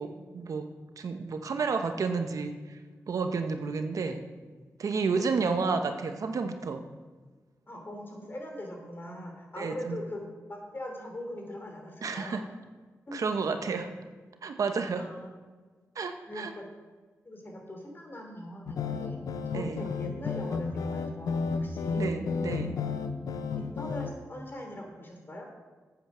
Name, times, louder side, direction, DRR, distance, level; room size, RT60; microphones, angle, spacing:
voice 1, 0.0-2.8 3.1-4.2 4.8-6.8 9.6-10.0 12.0-12.4 13.1-13.9 14.4-15.1 16.0-16.5 19.5-19.9 22.0-22.8, right 4 dB, 75° right, 7 dB, 0.9 m, -31 dB
voice 2, 7.7-12.4 13.1-13.2 14.9-15.3 16.3-16.6 17.2-22.1 23.6-25.5, left 1 dB, 35° left, 2 dB, 3.0 m, -41 dB
sound 1, 18.7-24.1, left 5 dB, 85° left, 0.7 m, -32 dB
8.7 x 8.3 x 6.1 m, 1.4 s
cardioid pair, 55°, 6 cm